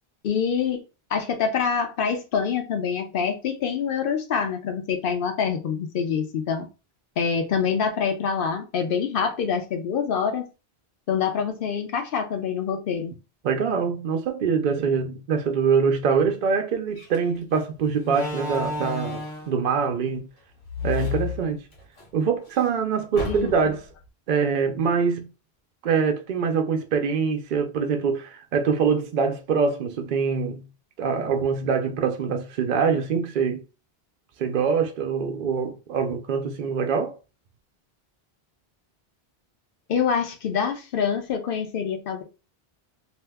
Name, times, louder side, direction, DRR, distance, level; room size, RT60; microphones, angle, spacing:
voice 1, 0.2-0.8 1.1-6.7 7.2-10.5 11.1-13.2 23.2-23.5 39.9-42.2, left 6 dB, 65° left, 0.8 m, -25 dB
voice 2, 13.4-20.3 20.8-21.6 22.1-23.8 24.3-25.3 25.8-30.6 31.0-33.6 34.4-37.2, right 6 dB, 60° right, 0.6 m, -24 dB
Slam, 17.0-17.2 18.0-19.6 20.6-22.0 22.4-22.5 23.1-23.8, left 3 dB, 85° left, 1.2 m, -31 dB
2.8 x 2.1 x 3.3 m
omnidirectional pair, 1.0 m